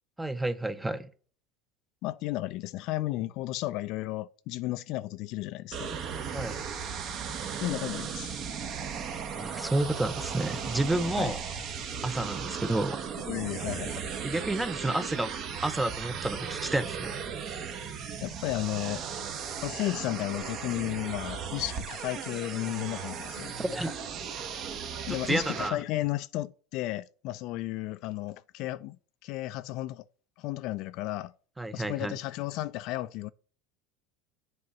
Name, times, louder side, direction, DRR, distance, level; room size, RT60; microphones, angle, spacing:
voice 1, 0.2-1.1 6.3-6.6 9.4-11.4 12.0-13.1 14.2-15.3 15.6-17.2 23.5-24.0 25.1-25.8 31.6-32.1, right 2 dB, 10° right, 0.6 m, -30 dB
voice 2, 2.0-6.0 7.6-8.4 11.2-11.3 13.3-14.1 18.2-19.0 19.6-23.5 24.6-24.7 25.1-29.0 29.2-30.0 30.4-31.3 31.7-33.3, left 16 dB, 60° left, 0.3 m, -33 dB
sound 1, 5.7-25.7, right 7 dB, 50° right, 0.9 m, -36 dB
7.6 x 2.9 x 5.4 m
hypercardioid pair, 90°, 0 cm